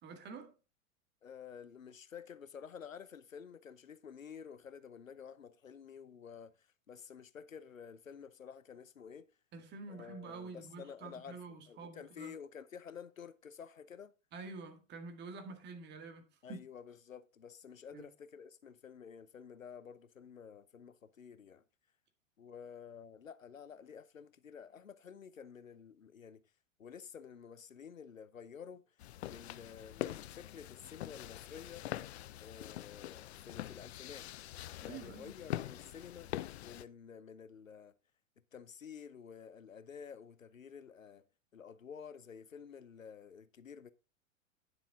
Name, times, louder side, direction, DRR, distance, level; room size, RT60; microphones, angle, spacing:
voice 1, 0.0-0.5 9.5-12.3 14.3-16.6 17.9-18.1 34.8-35.4, right 4 dB, 25° right, 1.9 m, -48 dB
voice 2, 1.2-9.3 9.9-14.1 16.4-21.6 22.4-26.4 26.8-31.9 32.4-34.3 34.8-36.3 36.6-37.9 38.5-41.2 41.5-43.9, left 7 dB, 85° left, 0.8 m, -51 dB
sound 1, 29.0-36.8, left 14 dB, 55° left, 0.6 m, -44 dB
9.7 x 7.0 x 3.8 m
figure-of-eight pair, 105°, 39 cm